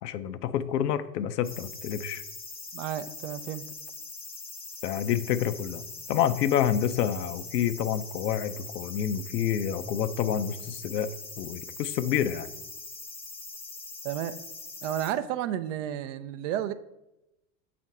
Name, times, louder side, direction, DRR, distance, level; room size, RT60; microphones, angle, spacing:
voice 1, 0.0-2.2 4.8-5.8 6.1-11.1 11.4-12.5, left 9 dB, 70° left, 12 dB, 0.6 m, -28 dB
sound 1, 1.4-15.1, left 3 dB, 10° left, 0.5 m, -42 dB
voice 2, 2.7-3.6 14.0-14.4 14.8-16.7, right 11 dB, 50° right, 12 dB, 0.5 m, -32 dB
7.1 x 2.5 x 5.3 m, 0.93 s
hypercardioid pair, 90°, 49 cm